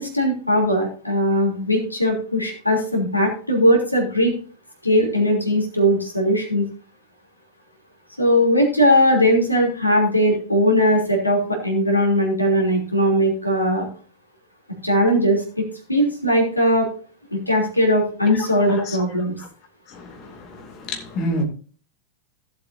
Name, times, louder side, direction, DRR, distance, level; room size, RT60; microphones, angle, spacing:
voice 1, 0.0-4.3 4.8-6.6 8.2-13.9 14.8-15.6 15.9-16.9 17.5-19.3, equal, 85° left, 3.2 m, -19 dB
voice 2, 18.3-19.0 19.4-19.5 19.9-21.4, left 1 dB, 35° left, 2.5 m, -30 dB
16.5 x 7.9 x 2.7 m
figure-of-eight pair, 90°, 0 cm